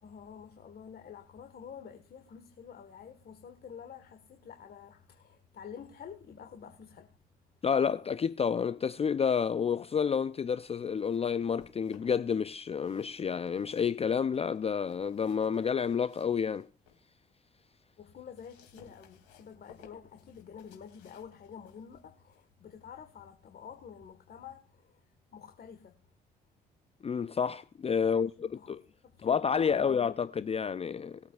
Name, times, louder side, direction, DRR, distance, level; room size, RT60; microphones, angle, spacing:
voice 1, 0.0-7.2 18.0-25.0 25.3-26.0 28.0-28.8 29.0-30.0, left 7 dB, 50° left, 1.6 m, -49 dB
voice 2, 7.6-16.7 27.0-28.8 29.2-31.2, left 6 dB, 30° left, 0.5 m, -29 dB
sound 1, 10.8-12.4 12.7-17.1 17.5-24.1, left 8 dB, 70° left, 2.6 m, -62 dB
21.0 x 8.2 x 2.4 m
hypercardioid pair, 50°, 20 cm